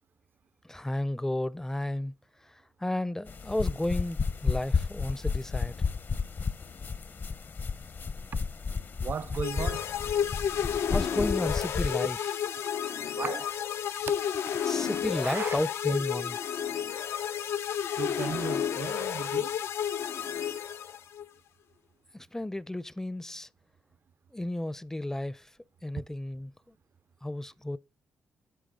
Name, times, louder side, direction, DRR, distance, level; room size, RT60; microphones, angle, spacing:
voice 1, 0.6-2.1 2.4-5.7 10.9-12.5 14.6-16.4 22.1-23.5 24.3-25.5 25.8-26.5 27.2-27.8, left 1 dB, 10° left, 0.5 m, -33 dB
sound 1, 3.3-12.0, left 5 dB, 50° left, 0.8 m, -32 dB
voice 2, 9.0-9.8 13.2-13.5 14.1-14.7 15.2-15.6 18.0-19.5, right 6 dB, 50° right, 0.4 m, -36 dB
sound 2, 9.4-21.3, left 8 dB, 75° left, 0.4 m, -31 dB
10.5 x 6.4 x 3.7 m
cardioid pair, 65°, 4 cm